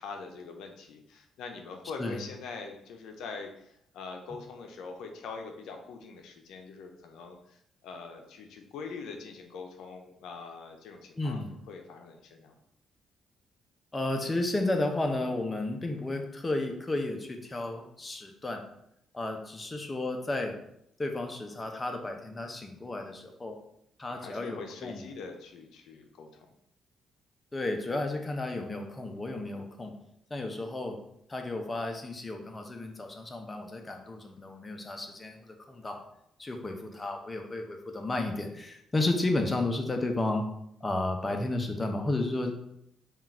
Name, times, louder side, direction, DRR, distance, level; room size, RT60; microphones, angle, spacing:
voice 1, 0.0-12.5 24.1-26.5, left 4 dB, 85° left, 4 dB, 0.5 m, -43 dB
voice 2, 11.2-11.5 13.9-18.7 19.1-20.6 21.0-23.6 24.0-25.1 27.5-29.9 30.3-31.0 31.3-36.0 36.4-40.5 40.8-42.5, left 2 dB, 20° left, 3 dB, 0.6 m, -32 dB
3.8 x 2.3 x 4.3 m, 0.75 s
cardioid pair, 90°, 0 cm